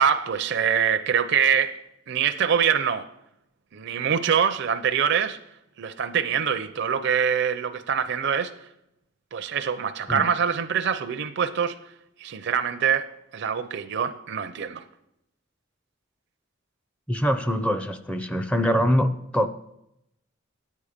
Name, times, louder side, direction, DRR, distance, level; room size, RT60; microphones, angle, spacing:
voice 1, 0.0-1.8 2.1-3.1 3.7-5.4 5.8-8.5 9.3-11.8 12.2-13.1 13.3-14.8, right 7 dB, 55° right, 0.5 m, -24 dB
voice 2, 17.1-19.5, equal, 5° left, 0.4 m, -23 dB
9.5 x 8.4 x 5.0 m
head